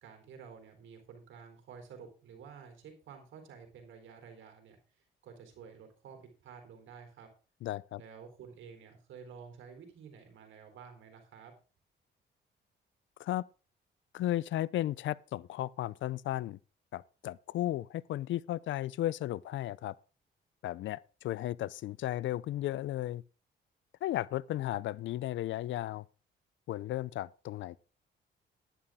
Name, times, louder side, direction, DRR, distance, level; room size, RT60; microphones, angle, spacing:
voice 1, 0.0-4.8 5.2-7.3 8.0-11.5, right 6 dB, 80° right, 4.1 m, -51 dB
voice 2, 7.6-8.0 13.2-13.5 14.1-16.6 16.9-19.9 20.6-23.2 24.0-26.0 26.7-27.8, left 14 dB, 70° left, 0.5 m, -34 dB
11.5 x 11.0 x 3.7 m
cardioid pair, 90°, 20 cm